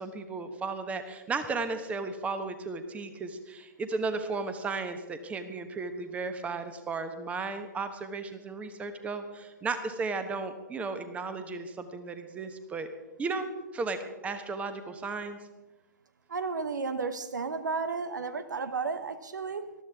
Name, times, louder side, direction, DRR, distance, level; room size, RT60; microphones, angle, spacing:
voice 1, 0.0-12.9 13.2-13.5 13.7-14.0 14.2-15.4, right 4 dB, 15° right, 1.2 m, -34 dB
voice 2, 16.3-19.7, right 4 dB, 70° right, 0.9 m, -33 dB
20.0 x 13.5 x 3.6 m
figure-of-eight pair, 115°, 10 cm